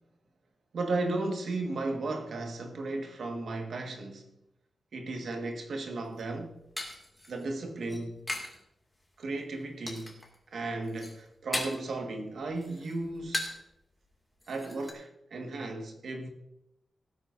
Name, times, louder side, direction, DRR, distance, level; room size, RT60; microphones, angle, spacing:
voice 1, 0.7-4.3 4.9-6.6 7.3-8.2 9.2-10.2 10.5-13.6 14.5-16.3, right 2 dB, 70° right, 1.6 m, -35 dB
sound 1, 6.0-8.6 8.9-9.4 9.9-10.4 10.7-11.9 12.3-13.7 14.0-14.1 14.4-14.9, left 1 dB, 10° left, 2.3 m, -38 dB
18.0 x 9.6 x 2.6 m
wide cardioid pair, 140°, 0 cm